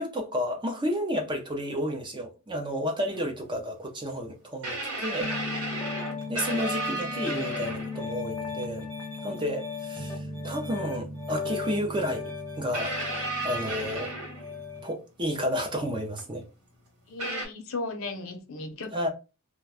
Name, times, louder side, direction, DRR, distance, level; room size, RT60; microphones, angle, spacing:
voice 1, 0.0-5.3 6.3-8.9 9.2-13.2 13.4-14.1 14.8-16.4 18.9-19.1, equal, 20° right, 0.5 m, -31 dB
sound 1, 3.1-3.2 4.6-8.1 9.4-9.5 11.3-11.4 12.7-14.8 16.2-16.3 17.2-17.5, right 2 dB, 85° right, 1.5 m, -33 dB
Piano, 5.2-14.9, left 4 dB, 5° left, 0.8 m, -36 dB
voice 2, 17.1-19.1, left 3 dB, 65° left, 0.6 m, -36 dB
2.5 x 2.2 x 3.2 m
head